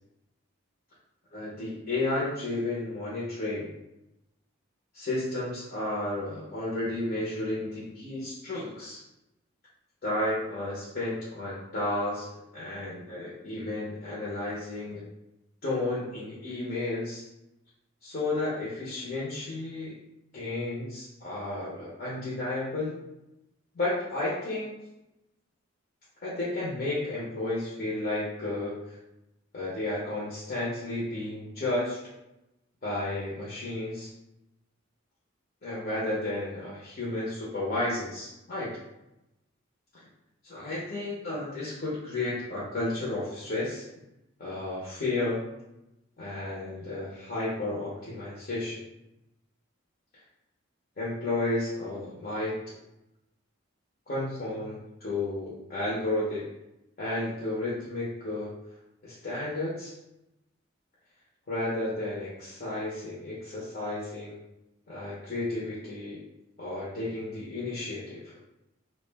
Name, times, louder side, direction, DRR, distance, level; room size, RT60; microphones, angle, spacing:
voice 1, 1.3-3.7 4.9-9.0 10.0-12.3 12.5-15.0 15.6-17.3 18.0-19.9 20.3-23.0 23.7-24.7 26.2-29.0 29.5-32.0 32.8-34.1 35.6-38.7 39.9-40.0 40.4-43.8 44.4-45.5 46.2-48.8 51.0-52.7 54.1-56.5 57.0-58.5 59.0-59.9 61.5-64.4 64.9-66.2 66.6-68.3, left 2 dB, 45° left, -8 dB, 0.6 m, -32 dB
2.3 x 2.1 x 3.3 m, 0.91 s
head